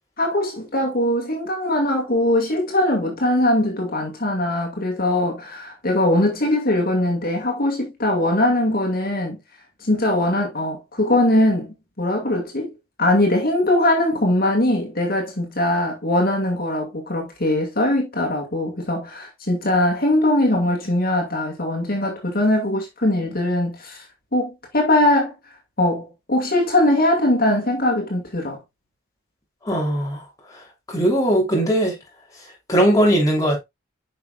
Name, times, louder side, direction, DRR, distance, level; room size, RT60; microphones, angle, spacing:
voice 1, 0.2-9.4 9.8-12.7 13.0-24.0 24.3-25.3 25.8-28.6, left 1 dB, 45° left, 2.2 m, -21 dB
voice 2, 29.6-30.2 30.9-32.0 32.7-33.6, right 1 dB, 15° left, 3.1 m, -19 dB
8.8 x 6.0 x 2.4 m
head